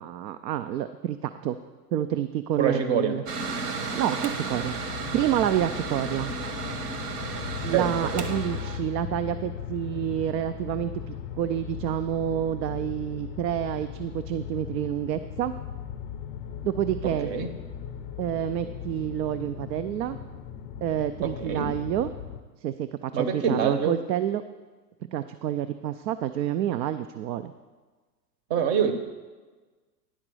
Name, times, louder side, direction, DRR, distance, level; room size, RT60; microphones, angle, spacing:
voice 1, 0.0-1.6 1.9-3.2 3.9-6.3 7.6-15.5 16.6-17.3 18.2-20.2 20.8-22.1 22.6-24.4 25.1-27.5, right 11 dB, 80° right, 10 dB, 0.5 m, -28 dB
voice 2, 2.6-3.1 7.7-7.9 8.2-8.3 17.2-17.5 21.2-21.7 23.1-23.9 28.5-29.0, right 7 dB, 30° right, 9 dB, 0.7 m, -25 dB
Mechanical fan, 3.3-8.8, right 4 dB, 65° right, 1.2 m, -33 dB
sound 1, 4.5-22.4, left 9 dB, 35° left, 0.4 m, -38 dB
10.0 x 4.0 x 6.1 m, 1.3 s
hypercardioid pair, 135°, 50 cm